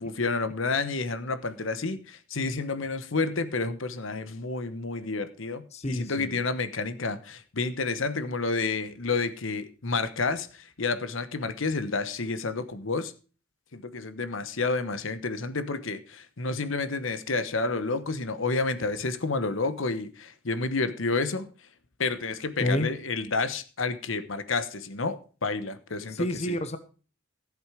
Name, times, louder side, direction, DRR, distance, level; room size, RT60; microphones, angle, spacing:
voice 1, 0.0-13.1 13.7-21.5 22.0-26.6, left 3 dB, 75° left, 1.1 m, -30 dB
voice 2, 5.7-6.4 22.6-22.9 26.1-26.8, left 1 dB, 35° left, 0.9 m, -29 dB
14.0 x 8.0 x 4.9 m
head